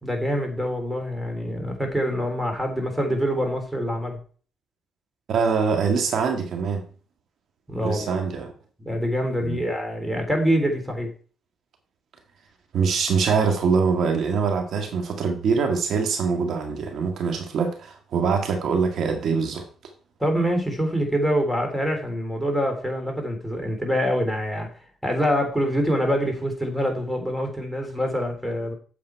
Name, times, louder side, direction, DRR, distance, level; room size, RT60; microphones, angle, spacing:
voice 1, 0.0-4.2 7.7-8.2 8.8-11.1 20.2-24.7 25.0-28.7, equal, ahead, 3.4 m, -25 dB
voice 2, 5.3-6.8 7.8-8.5 9.4-9.6 12.7-19.7, right 5 dB, 65° right, 1.7 m, -23 dB
8.6 x 7.3 x 4.6 m
cardioid pair, 90°, 0 cm